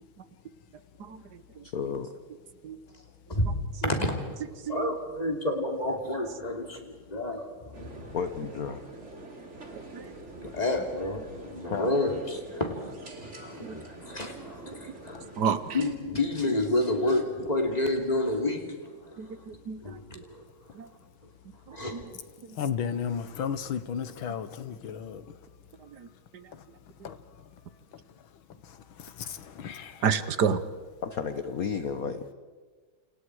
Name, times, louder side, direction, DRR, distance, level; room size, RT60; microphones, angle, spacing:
voice 1, 1.6-2.1 8.1-8.8 11.7-11.9 17.7-17.8 31.0-32.3, left 6 dB, 50° left, 1.2 m, -32 dB
voice 2, 3.3-4.2 4.5-8.1 10.3-15.4 15.7-19.4 19.8-20.4 21.7-22.0, left 1 dB, 15° left, 3.0 m, -30 dB
sound 1, 7.7-16.0, right 2 dB, 30° right, 2.9 m, -46 dB
voice 3, 19.2-19.8 20.8-20.9 22.6-22.7 30.0-30.6, right 7 dB, 60° right, 1.3 m, -28 dB
voice 4, 22.6-25.2 27.0-27.2 29.2-29.9, left 8 dB, 70° left, 1.9 m, -33 dB
29.0 x 28.5 x 4.8 m
omnidirectional pair, 2.4 m